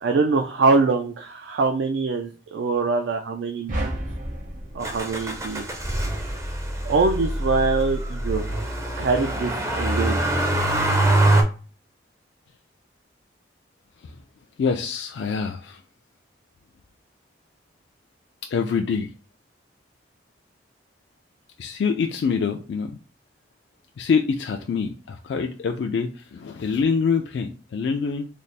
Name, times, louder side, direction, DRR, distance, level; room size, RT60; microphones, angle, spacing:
voice 1, 0.0-4.0 4.7-5.6 6.8-10.3, right 4 dB, 80° right, 4 dB, 0.4 m, -24 dB
sound 1, 3.7-6.1, right 1 dB, 45° right, 0.8 m, -32 dB
Motor vehicle (road), 4.8-11.4, right 1 dB, 15° right, 0.4 m, -24 dB
voice 2, 14.6-15.8 18.5-19.1 21.6-22.9 24.0-28.3, left 5 dB, 70° left, 4 dB, 0.3 m, -25 dB
3.3 x 2.0 x 4.0 m, 0.39 s
head